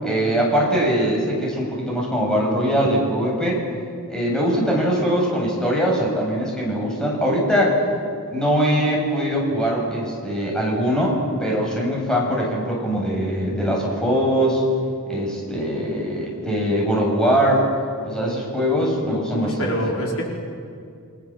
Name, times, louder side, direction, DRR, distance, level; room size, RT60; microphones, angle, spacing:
voice 1, 0.0-3.6 4.1-7.8 8.3-14.6 15.1-17.6 18.0-19.7, equal, 5° left, -3 dB, 7.4 m, -21 dB
voice 2, 19.3-20.2, equal, 65° left, -1 dB, 5.1 m, -25 dB
29.5 x 24.5 x 7.5 m, 2.4 s
head